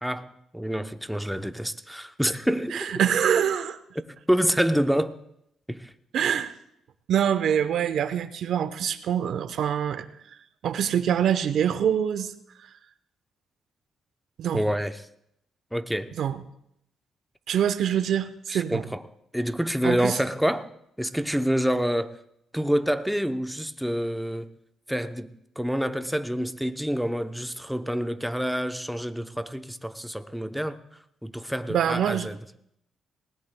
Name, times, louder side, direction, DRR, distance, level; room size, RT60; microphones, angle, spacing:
voice 1, 0.0-2.9 4.0-5.2 5.7-5.9 14.5-15.0 15.7-16.1 18.5-19.0 19.3-20.7 21.0-22.2 22.5-24.5 24.9-30.8 31.2-32.4, equal, ahead, 0.6 m, -27 dB
voice 2, 2.7-3.8 6.1-6.5 7.1-10.1 10.6-12.3 14.4-14.6 16.1-16.4 17.5-18.8 19.8-20.2 31.7-32.3, right 9 dB, 70° right, 0.8 m, -25 dB
19.5 x 18.0 x 2.2 m
cardioid pair, 110°, 0 cm